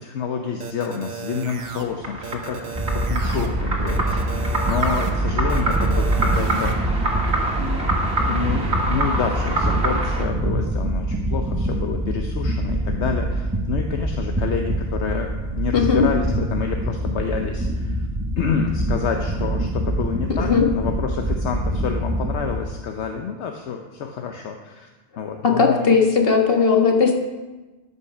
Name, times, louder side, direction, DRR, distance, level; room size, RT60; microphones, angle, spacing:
voice 1, 0.0-4.1 4.3-7.0 7.5-18.1 18.4-24.9 25.2-25.9, left 6 dB, 75° left, 4 dB, 1.0 m, -28 dB
sound 1, 0.6-1.8 2.2-3.5 3.9-5.1 5.5-6.7, right 6 dB, 85° right, 1.3 m, -34 dB
sound 2, 1.4-10.3, right 1 dB, 65° right, 1.8 m, -27 dB
sound 3, 2.7-22.6, right 1 dB, 15° right, 0.8 m, -25 dB
voice 2, 15.7-16.0 20.4-20.7 25.4-27.1, left 5 dB, 55° left, 1 dB, 1.7 m, -17 dB
13.5 x 5.6 x 5.9 m, 1.2 s
omnidirectional pair, 1.2 m